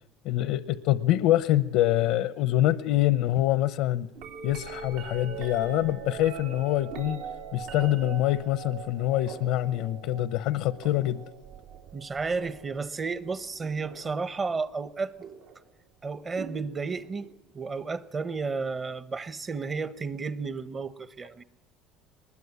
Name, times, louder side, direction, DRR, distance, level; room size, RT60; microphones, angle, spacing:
voice 1, 0.2-4.1 4.4-7.2 7.5-11.2, left 14 dB, 75° left, 0.8 m, -25 dB
sound 1, 4.1-14.3 15.2-15.6 16.4-17.3 19.1-19.2, right 7 dB, 75° right, 3.3 m, -42 dB
voice 2, 11.9-15.1 16.0-17.3 17.5-21.4, right 4 dB, 25° right, 1.0 m, -32 dB
23.0 x 20.5 x 9.7 m
cardioid pair, 130°, 0 cm